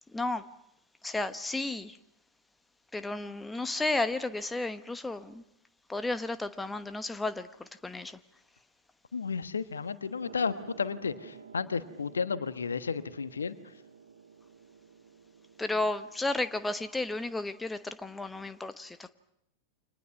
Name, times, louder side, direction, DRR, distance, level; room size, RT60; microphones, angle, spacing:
voice 1, 0.1-0.4 1.0-2.0 2.9-5.4 5.9-8.2 15.6-19.1, left 2 dB, 10° left, 11 dB, 1.1 m, -33 dB
voice 2, 9.1-13.5, left 5 dB, 75° left, 12 dB, 1.3 m, -33 dB
sound 1, 10.2-16.8, right 6 dB, 70° right, 1.7 m, -52 dB
29.5 x 26.0 x 6.1 m, 0.81 s
figure-of-eight pair, 90°, 0 cm